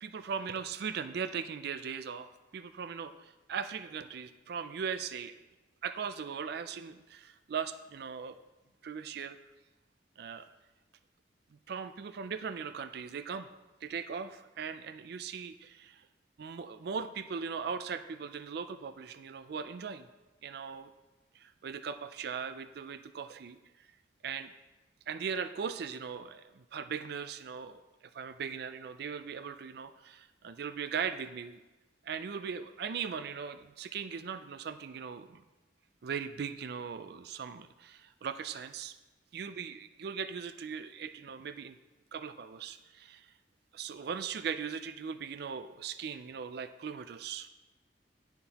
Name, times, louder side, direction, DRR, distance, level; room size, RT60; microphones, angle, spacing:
voice 1, 0.0-5.4 5.8-8.4 8.8-9.4 10.2-10.5 11.7-13.5 13.8-16.1 16.4-20.1 20.4-20.9 21.3-23.6 24.2-24.5 25.1-27.8 28.1-31.6 32.0-35.4 36.0-39.0 39.3-41.8 42.1-43.3 43.7-47.5, right 6 dB, 60° right, 11 dB, 0.4 m, -39 dB
16.5 x 5.8 x 2.9 m, 1.1 s
head